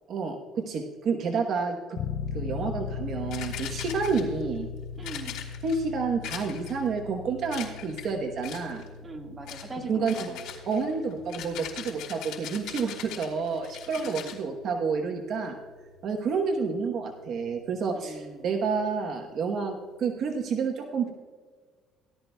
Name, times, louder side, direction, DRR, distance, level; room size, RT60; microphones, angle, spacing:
voice 1, 0.1-2.0 2.3-4.7 5.6-8.8 9.9-10.3 10.7-15.6 16.0-21.1, right 5 dB, 50° right, 3 dB, 1.1 m, -29 dB
sound 1, 2.0-16.4, left 6 dB, 55° left, 0.6 m, -40 dB
sound 2, 3.3-4.4 5.0-5.8 6.2-6.9 7.5-8.1 8.4-8.9 9.5-9.7 10.1-14.4, left 10 dB, 85° left, 3.2 m, -40 dB
voice 2, 5.0-5.4 9.0-10.4 14.0-14.4 17.9-18.5, right 3 dB, 20° right, 2 dB, 1.7 m, -41 dB
17.5 x 12.0 x 2.3 m, 1.6 s
cardioid pair, 140°, 0 cm